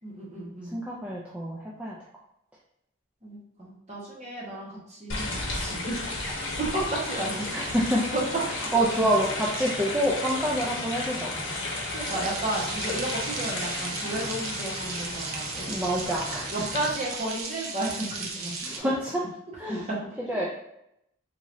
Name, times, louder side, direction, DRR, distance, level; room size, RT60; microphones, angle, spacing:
voice 1, 0.0-0.8 3.2-7.7 8.1-8.2 9.0-9.1 11.9-15.7 16.0-16.1 16.5-18.1 18.3-18.5 19.7-20.0, right 1 dB, 30° right, -4 dB, 1.0 m, -33 dB
voice 2, 0.7-2.0 7.5-8.0 8.7-11.3 15.7-16.5 18.6-19.2 19.6-19.8 20.3-20.4, right 1 dB, 5° right, -5 dB, 0.3 m, -27 dB
sound 1, 5.1-16.9, left 2 dB, 60° left, 0.8 m, -34 dB
sound 2, 12.0-18.8, right 4 dB, 85° right, 0.7 m, -36 dB
sound 3, 16.6-17.9 18.4-18.5, left 3 dB, 85° left, 0.6 m, -44 dB
3.8 x 3.0 x 2.5 m, 0.80 s
head